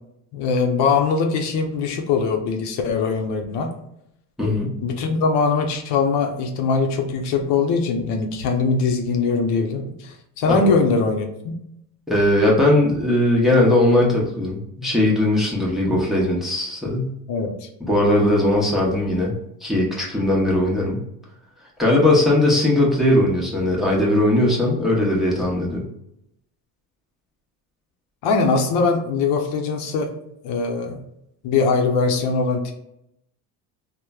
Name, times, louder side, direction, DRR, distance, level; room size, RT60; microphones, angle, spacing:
voice 1, 0.3-3.7 4.8-11.6 17.3-17.7 28.2-30.1 30.4-31.0 31.4-32.7, left 4 dB, 65° left, 4 dB, 0.7 m, -21 dB
voice 2, 4.4-4.8 10.5-10.7 12.1-17.1 17.9-19.3 19.6-21.0 21.8-25.8, left 1 dB, ahead, -4 dB, 0.8 m, -19 dB
3.0 x 2.1 x 2.2 m, 0.79 s
cardioid pair, 110°, 44 cm